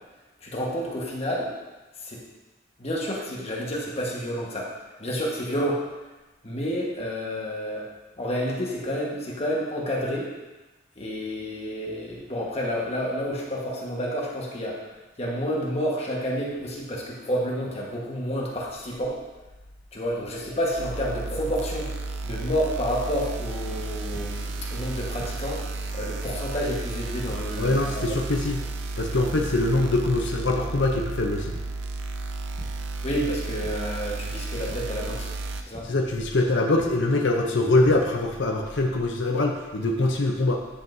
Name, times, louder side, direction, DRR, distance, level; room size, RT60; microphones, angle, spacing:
voice 1, 0.4-1.5 2.0-2.2 2.8-5.8 6.4-7.9 8.2-10.3 11.0-19.2 19.9-21.9 22.2-28.2 33.0-35.3 35.6-35.9, equal, 35° left, -3 dB, 1.4 m, -30 dB
sound 1, 20.8-35.6, right 3 dB, 80° right, 0.5 m, -33 dB
sound 2, 24.1-24.2 25.2-25.3 26.2-26.3 27.3-27.4 28.3-28.4 29.4-29.5 30.0-30.1 30.5-30.6 31.5-31.6 32.6-32.7 33.6-33.7 34.7-34.8 35.7-35.8 36.8-36.9 37.6-37.9, equal, ahead, 0.9 m, -41 dB
voice 2, 27.6-28.6 29.0-31.5 35.9-40.6, left 2 dB, 70° left, 1 dB, 0.7 m, -23 dB
10.0 x 5.5 x 2.7 m, 1.1 s
head